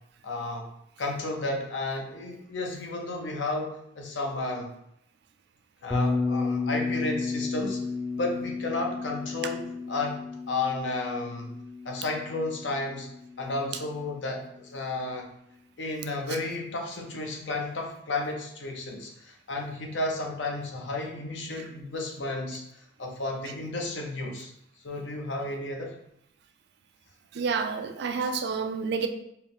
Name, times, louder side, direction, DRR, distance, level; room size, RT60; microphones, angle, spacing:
voice 1, 0.2-0.7 1.0-4.7 5.8-7.8 8.2-11.5 11.8-13.1 13.4-15.3 15.8-22.6 23.0-24.5 24.8-25.9, left 2 dB, 75° left, 1 dB, 0.7 m, -32 dB
Bass guitar, 5.9-14.0, left 4 dB, 15° left, 0.6 m, -32 dB
voice 2, 27.3-29.1, right 5 dB, 60° right, 7 dB, 0.4 m, -29 dB
4.4 x 2.1 x 3.6 m, 0.76 s
head